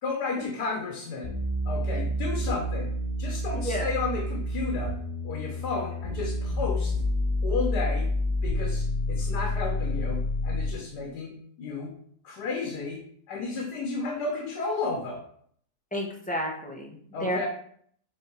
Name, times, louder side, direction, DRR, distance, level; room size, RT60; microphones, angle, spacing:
voice 1, 0.0-1.3 1.6-2.9 3.2-4.9 5.2-6.9 7.4-8.1 8.4-11.9 12.2-13.0 13.3-15.2 17.1-17.5, left 4 dB, 85° left, 1 dB, 1.6 m, -32 dB
sound 1, 1.2-10.8, left 1 dB, 30° left, 1.1 m, -29 dB
voice 2, 3.5-3.9 15.9-17.5, equal, 5° left, -2 dB, 1.3 m, -31 dB
8.1 x 3.5 x 4.7 m, 0.62 s
omnidirectional pair, 1.7 m